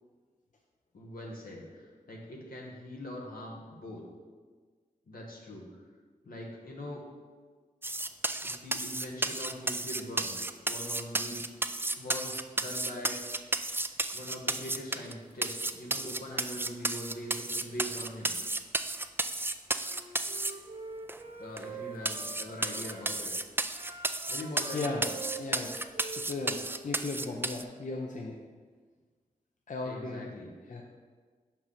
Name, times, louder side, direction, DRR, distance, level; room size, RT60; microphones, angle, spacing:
voice 1, 0.9-4.0 5.1-5.7 6.2-7.0 8.4-11.4 12.0-13.4 14.1-18.3 21.4-23.3 24.3-25.1 29.8-30.8, left 1 dB, 85° left, -2 dB, 1.3 m, -42 dB
sound 1, 7.8-15.1 15.4-20.5 21.1-21.2 21.6-21.7 22.0-27.6, right 2 dB, 15° right, 0.3 m, -33 dB
Wind instrument woodwind instrument, 19.8-23.1 23.6-27.2, right 5 dB, 45° right, 1.2 m, -46 dB
voice 2, 24.7-25.1 25.4-25.7 26.2-28.4 29.7-30.3 30.7-30.8, left 3 dB, 60° left, 0 dB, 0.7 m, -36 dB
5.1 x 4.6 x 5.6 m, 1.5 s
cardioid pair, 45°, 15 cm